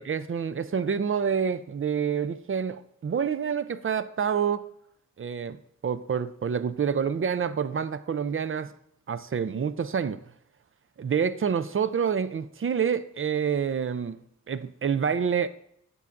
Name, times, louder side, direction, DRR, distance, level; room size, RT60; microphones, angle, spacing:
voice 1, 0.0-4.6 5.2-8.7 9.1-10.2 11.0-14.2 14.5-15.5, right 7 dB, 40° right, 0.4 m, -27 dB
8.1 x 5.5 x 2.5 m
cardioid pair, 45°, 34 cm